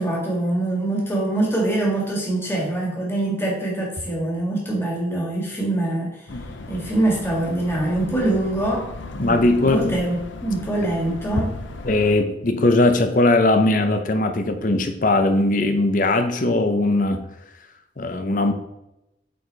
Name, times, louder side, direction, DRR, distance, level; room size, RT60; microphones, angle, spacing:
voice 1, 0.0-6.4 6.7-11.5, right 2 dB, 15° left, -3 dB, 1.8 m, -24 dB
sound 1, 6.3-12.2, left 2 dB, 80° left, 0.7 m, -37 dB
voice 2, 9.2-9.9 11.8-17.2 18.0-18.5, left 2 dB, 45° left, 7 dB, 0.7 m, -19 dB
8.6 x 4.3 x 3.3 m, 0.88 s
head